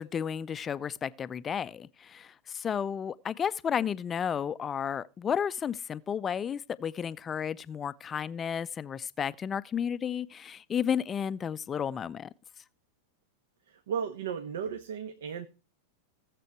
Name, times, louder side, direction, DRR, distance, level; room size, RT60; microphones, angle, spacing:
voice 1, 0.0-12.3, left 8 dB, 20° left, 0.5 m, -32 dB
voice 2, 13.7-15.5, right 7 dB, 60° right, 1.2 m, -35 dB
17.0 x 7.7 x 4.7 m
figure-of-eight pair, 90°, 0 cm